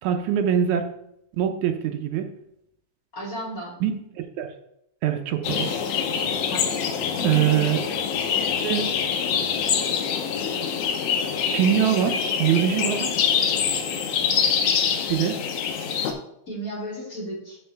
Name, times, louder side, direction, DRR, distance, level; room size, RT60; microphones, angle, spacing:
voice 1, 0.0-0.9 1.4-2.3 3.8-4.5 5.0-5.7 7.2-7.8 8.6-8.9 11.5-13.2 15.1-15.4, right 10 dB, 80° right, 6 dB, 2.1 m, -23 dB
voice 2, 3.1-3.8 6.5-6.7 7.2-7.7 16.5-17.6, right 1 dB, 30° left, -6 dB, 3.0 m, -34 dB
sound 1, 5.4-16.1, left 7 dB, 85° left, 2.3 m, -25 dB
13.0 x 4.9 x 3.5 m, 0.78 s
omnidirectional pair, 3.4 m